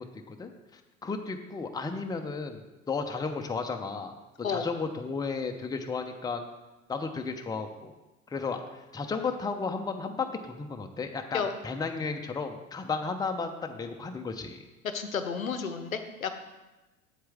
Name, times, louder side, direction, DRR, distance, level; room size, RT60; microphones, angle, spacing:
voice 1, 0.0-4.2 4.5-6.4 6.9-7.9 8.3-14.6, left 4 dB, 10° left, 4 dB, 0.7 m, -34 dB
voice 2, 14.9-16.3, left 6 dB, 90° left, 9 dB, 0.8 m, -31 dB
8.3 x 7.8 x 3.4 m, 1.1 s
figure-of-eight pair, 80°, 40 cm